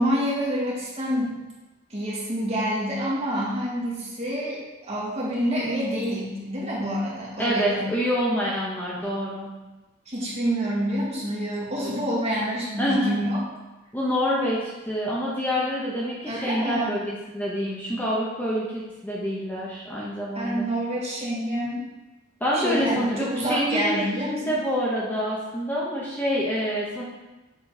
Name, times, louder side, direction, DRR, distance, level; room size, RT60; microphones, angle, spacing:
voice 1, 0.0-1.3 1.9-7.9 10.1-13.4 16.3-17.0 20.3-21.8 22.5-24.6, equal, 30° right, -6 dB, 1.9 m, -27 dB
voice 2, 7.4-9.5 12.8-13.2 13.9-20.7 22.4-27.0, equal, 10° left, -6 dB, 0.9 m, -27 dB
7.2 x 4.0 x 4.0 m, 1.1 s
head